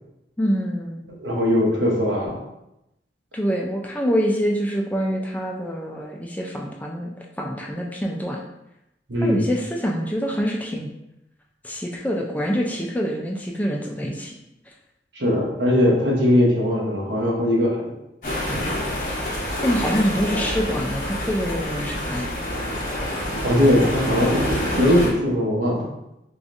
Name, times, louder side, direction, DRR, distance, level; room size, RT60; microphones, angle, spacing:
voice 1, 0.4-1.0 3.3-8.4 9.2-10.9 11.6-14.3 14.7-14.8 19.6-22.3, equal, 10° left, -1 dB, 0.3 m, -25 dB
voice 2, 1.2-2.4 9.1-9.4 15.1-18.0 18.3-18.5 23.4-25.9, left 1 dB, 80° right, -2 dB, 1.0 m, -20 dB
sound 1, 18.2-25.1, equal, 50° left, 1.0 m, -27 dB
4.8 x 2.4 x 2.6 m, 0.86 s
head